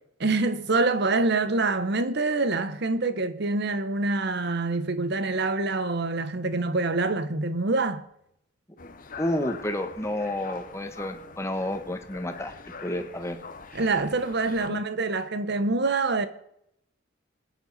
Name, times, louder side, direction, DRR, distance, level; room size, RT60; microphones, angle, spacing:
voice 1, 0.2-8.0 13.7-16.3, right 3 dB, 60° right, 1.0 m, -26 dB
sound 1, 8.8-14.7, left 4 dB, 45° left, 1.0 m, -43 dB
voice 2, 9.2-12.5 12.8-13.4 14.7-14.8, left 1 dB, 15° left, 1.3 m, -30 dB
21.5 x 9.2 x 4.1 m
head